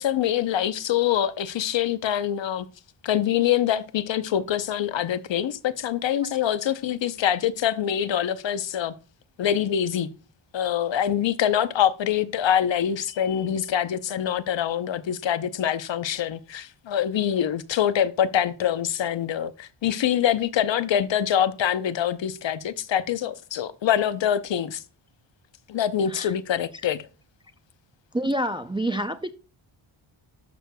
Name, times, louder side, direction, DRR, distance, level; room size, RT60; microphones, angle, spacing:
voice 1, 0.0-2.7 3.0-8.9 9.4-10.1 10.5-24.8 25.7-27.0, left 10 dB, 60° left, 0.7 m, -25 dB
voice 2, 28.1-29.3, right 1 dB, 10° right, 0.3 m, -28 dB
12.0 x 6.3 x 2.2 m
wide cardioid pair, 150°, 50 cm